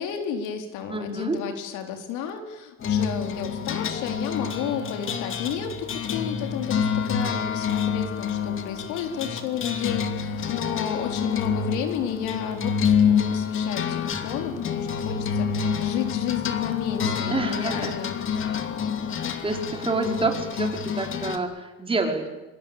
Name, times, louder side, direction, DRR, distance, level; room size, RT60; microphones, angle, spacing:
voice 1, 0.0-18.3, left 8 dB, 85° left, 6 dB, 4.1 m, -32 dB
voice 2, 0.9-1.4 17.3-17.9 19.4-22.3, right 3 dB, 20° right, 3 dB, 5.2 m, -28 dB
sound 1, 2.8-21.4, left 7 dB, 45° left, 2.7 m, -27 dB
27.0 x 25.0 x 8.6 m, 1.0 s
cardioid pair, 120°, 29 cm